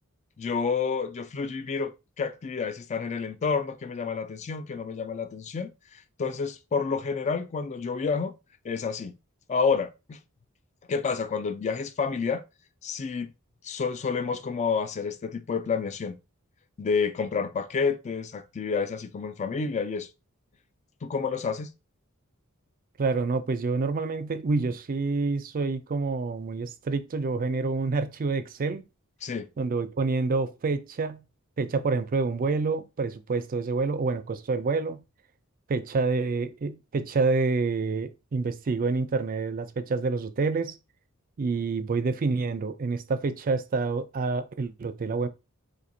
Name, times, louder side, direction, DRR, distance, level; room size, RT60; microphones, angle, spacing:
voice 1, 0.4-8.3 8.6-9.1 9.5-10.2 10.9-12.4 12.8-13.3 13.6-16.2 16.8-20.1 21.0-21.7 29.2-29.5, left 5 dB, 30° left, 0.3 m, -29 dB
voice 2, 23.0-28.8 29.6-31.2 31.6-35.0 35.7-40.8 41.4-45.3, right 4 dB, 40° right, 0.4 m, -27 dB
4.3 x 2.6 x 2.6 m
head